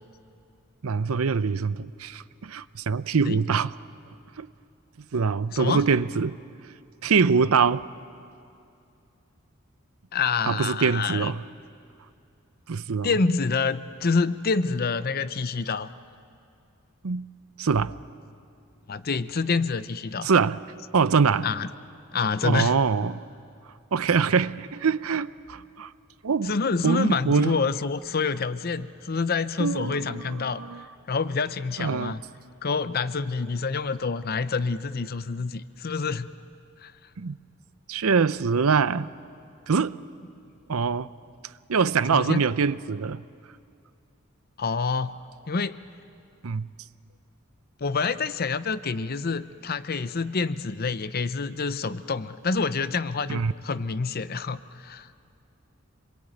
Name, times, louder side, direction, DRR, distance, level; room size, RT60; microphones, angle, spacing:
voice 1, 0.8-3.7 4.4-4.5 5.1-6.4 7.0-7.8 10.5-11.4 12.7-13.1 17.0-17.3 17.6-17.9 20.2-20.6 20.9-21.5 22.4-23.2 23.9-25.9 26.2-26.5 26.8-27.5 29.6-30.8 31.8-32.2 37.2-37.4 37.9-39.1 39.7-40.0 40.7-41.1 41.7-43.2 46.4-46.7 53.3-53.5, right 5 dB, 85° right, 0.6 m, -24 dB
voice 2, 10.1-11.3 13.0-15.9 18.9-20.3 21.4-21.7 22.1-22.7 26.4-30.6 31.1-32.2 32.6-36.3 36.8-36.9 42.1-42.4 44.6-45.2 45.5-45.8 47.8-55.1, left 4 dB, 45° left, 0.7 m, -27 dB
26.5 x 22.0 x 9.1 m
head